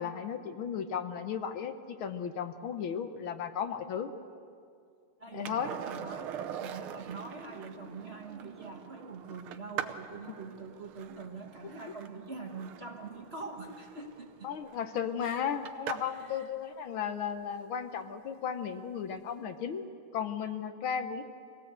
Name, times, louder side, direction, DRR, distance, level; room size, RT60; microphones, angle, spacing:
voice 1, 0.0-4.1 5.3-5.7 10.3-10.4 11.9-12.0 14.4-19.9 20.1-21.2, left 7 dB, 70° left, 8 dB, 1.8 m, -35 dB
voice 2, 5.2-14.7 15.2-15.5 16.1-16.5, right 4 dB, 35° right, 2 dB, 1.3 m, -44 dB
Skateboard, 5.4-16.3 18.9-19.0, right 9 dB, 75° right, 1.7 m, -43 dB
24.5 x 17.0 x 8.1 m, 2.3 s
omnidirectional pair, 2.4 m